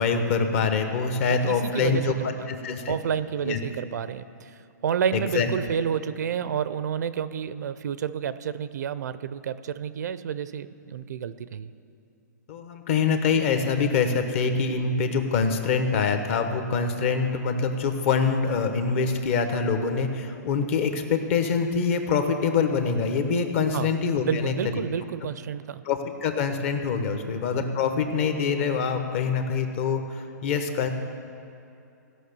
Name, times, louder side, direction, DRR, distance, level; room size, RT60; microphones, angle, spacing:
voice 1, 0.0-2.9 3.4-3.6 5.1-5.5 12.5-24.8 25.8-30.9, left 5 dB, 45° left, 6 dB, 1.1 m, -25 dB
voice 2, 1.2-2.5 2.9-4.5 4.8-11.7 23.7-23.9 24.3-25.8 27.1-27.3, right 8 dB, 70° right, 15 dB, 0.5 m, -30 dB
16.0 x 5.6 x 6.8 m, 2.7 s
hypercardioid pair, 150°, 10 cm